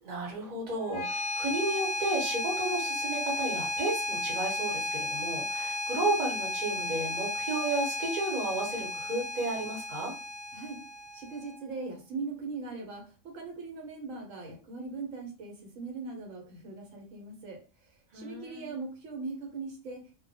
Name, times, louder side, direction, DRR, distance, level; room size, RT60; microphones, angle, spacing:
voice 1, 0.0-10.1 18.1-18.7, right 2 dB, 40° right, -2 dB, 0.8 m, -33 dB
sound 1, 0.8-11.8, left 2 dB, 65° left, 0.7 m, -34 dB
voice 2, 11.1-20.2, right 3 dB, 75° right, 1 dB, 1.0 m, -40 dB
2.2 x 2.1 x 2.6 m, 0.36 s
omnidirectional pair, 1.4 m